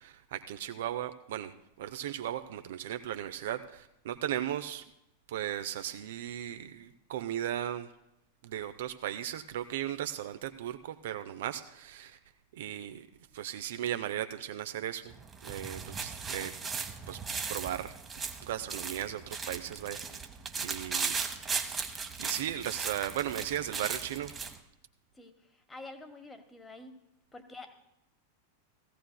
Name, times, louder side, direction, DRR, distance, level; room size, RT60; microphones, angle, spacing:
voice 1, 0.0-4.9 5.3-7.9 8.4-12.2 12.6-13.1 13.3-15.1 15.4-16.5 17.1-17.2 17.5-18.0 18.4-20.0 20.6-21.1 22.2-24.3, right 11 dB, 55° right, 9 dB, 0.5 m, -36 dB
sound 1, 15.1-24.6, right 5 dB, 20° right, 0.9 m, -37 dB
voice 2, 25.1-27.0 27.3-27.7, left 2 dB, 10° left, 7 dB, 1.2 m, -48 dB
17.0 x 15.0 x 2.2 m, 0.85 s
figure-of-eight pair, 90°, 0 cm